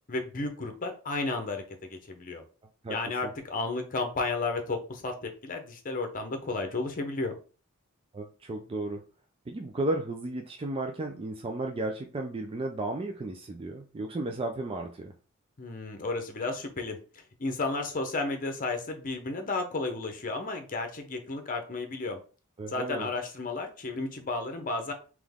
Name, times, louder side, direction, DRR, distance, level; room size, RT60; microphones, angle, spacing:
voice 1, 0.1-2.4 2.9-7.3 15.6-17.0 17.4-22.2 22.7-24.9, left 3 dB, 40° left, 5 dB, 0.8 m, -33 dB
voice 2, 8.1-9.0 9.5-15.1 22.6-23.1, right 2 dB, 25° right, 4 dB, 0.4 m, -34 dB
3.8 x 3.0 x 3.5 m, 0.36 s
head